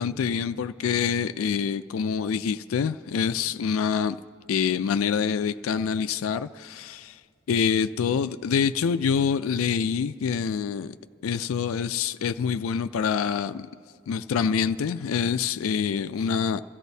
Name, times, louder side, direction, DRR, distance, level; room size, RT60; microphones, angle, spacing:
voice 1, 0.0-4.2 4.5-7.2 7.5-11.0 11.2-13.7 14.1-16.6, left 6 dB, 80° left, 0.4 m, -26 dB
26.5 x 15.0 x 2.7 m
head